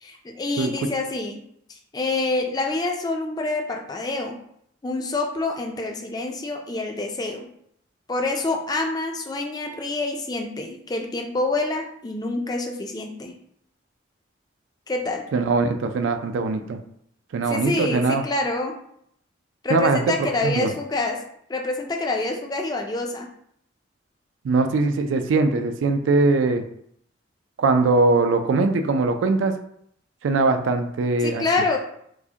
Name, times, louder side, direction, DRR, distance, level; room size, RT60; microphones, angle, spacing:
voice 1, 0.0-1.4 1.7-4.4 4.8-7.5 8.1-13.4 14.9-15.3 17.5-18.8 19.6-21.2 21.5-23.3 31.2-31.8, left 2 dB, 20° left, 2 dB, 0.3 m, -27 dB
voice 2, 0.6-0.9 15.3-16.8 17.3-18.2 19.7-20.7 24.4-26.6 27.6-29.5 30.2-31.4, right 3 dB, 80° right, 7 dB, 0.4 m, -21 dB
4.6 x 2.1 x 2.8 m, 0.70 s
head